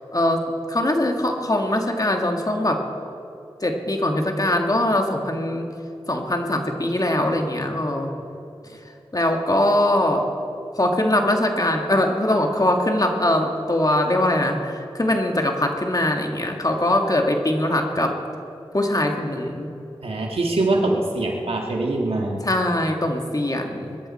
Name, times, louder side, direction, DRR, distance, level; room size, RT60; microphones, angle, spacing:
voice 1, 0.1-0.4 0.7-2.8 3.6-5.7 6.1-8.1 9.1-10.3 10.8-18.2 18.7-19.7 22.4-24.0, left 1 dB, 40° left, 3 dB, 2.0 m, -22 dB
voice 2, 20.0-22.4, right 2 dB, 85° right, 0 dB, 2.0 m, -23 dB
22.0 x 13.5 x 4.3 m, 2.7 s
cardioid pair, 40°, 10 cm